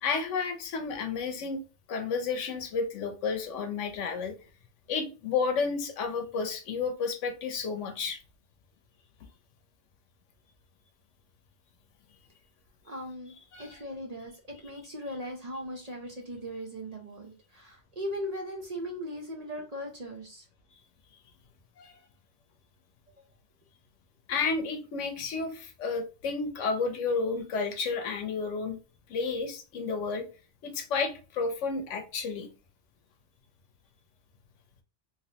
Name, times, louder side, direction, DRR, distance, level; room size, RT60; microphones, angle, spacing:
voice 1, 0.0-1.6 1.9-4.3 4.9-8.2 13.5-13.7 21.8-21.9 24.3-28.8 29.1-30.2 30.6-32.5, left 4 dB, 80° left, 6 dB, 1.0 m, -31 dB
voice 2, 12.8-20.5, equal, 40° right, -1 dB, 0.7 m, -39 dB
3.2 x 3.1 x 2.8 m, 0.33 s
omnidirectional pair, 1.2 m